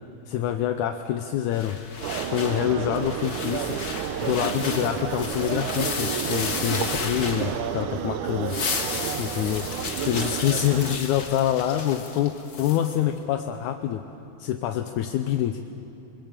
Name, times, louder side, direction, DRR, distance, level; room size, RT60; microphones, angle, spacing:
voice 1, 0.3-1.8 2.3-3.8 4.2-8.6 9.2-9.7 10.1-14.0 14.4-15.6, left 11 dB, 80° left, 6 dB, 2.1 m, -26 dB
sound 1, 1.5-7.9 8.3-13.0, left 5 dB, 45° left, 1.2 m, -33 dB
sound 2, 2.0-11.0, right 10 dB, 75° right, 2.2 m, -31 dB
28.0 x 21.0 x 7.5 m, 2.6 s
omnidirectional pair, 3.6 m